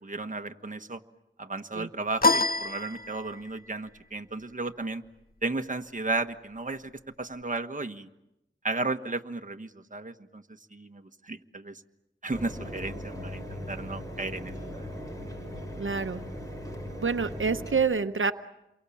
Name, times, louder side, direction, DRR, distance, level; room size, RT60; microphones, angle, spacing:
voice 1, 0.0-1.0 1.4-5.0 5.4-6.9 7.2-8.1 8.6-10.4 10.7-11.8 12.2-14.9, right 3 dB, 40° right, 6 dB, 1.4 m, -34 dB
sound 1, 2.2-3.6, left 3 dB, 50° left, 1.3 m, -26 dB
Mechanisms, 12.3-17.8, equal, 15° left, 7.0 m, -39 dB
voice 2, 15.8-16.2 17.0-18.3, right 5 dB, 85° right, 8 dB, 0.9 m, -27 dB
28.5 x 23.5 x 8.5 m, 0.90 s
wide cardioid pair, 50°, 20 cm